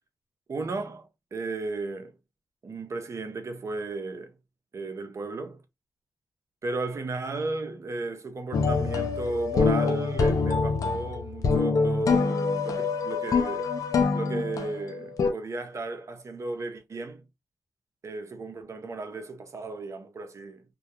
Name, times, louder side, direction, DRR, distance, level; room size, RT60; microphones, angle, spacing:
voice 1, 0.5-2.1 2.6-4.3 4.7-5.6 6.6-13.7 14.1-17.3 18.0-20.6, right 3 dB, 55° right, 0.7 m, -34 dB
sound 1, 8.5-15.3, left 4 dB, 65° left, 0.5 m, -25 dB
2.3 x 2.2 x 2.7 m
cardioid pair, 50°, 6 cm